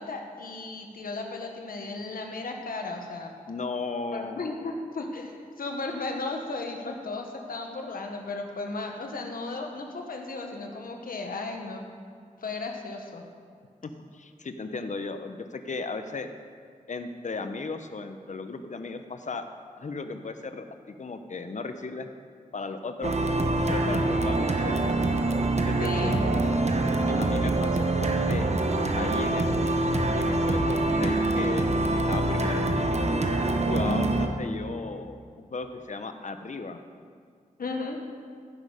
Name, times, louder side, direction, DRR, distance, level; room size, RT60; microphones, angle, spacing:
voice 1, 0.0-3.3 4.1-11.9 12.4-13.2 25.8-26.2 27.1-27.2 33.8-34.1 37.6-38.0, left 3 dB, 85° left, 2 dB, 1.3 m, -35 dB
voice 2, 3.5-4.4 13.8-16.3 16.9-19.4 19.8-22.1 22.5-23.1 23.7-24.8 25.6-26.2 27.2-28.4 28.9-29.7 30.2-31.7 32.1-32.7 33.7-36.8, left 4 dB, 60° left, 8 dB, 0.8 m, -35 dB
sound 1, 23.0-34.3, right 2 dB, 50° right, 1.0 m, -25 dB
15.5 x 6.4 x 5.0 m, 2.1 s
wide cardioid pair, 65°, 14 cm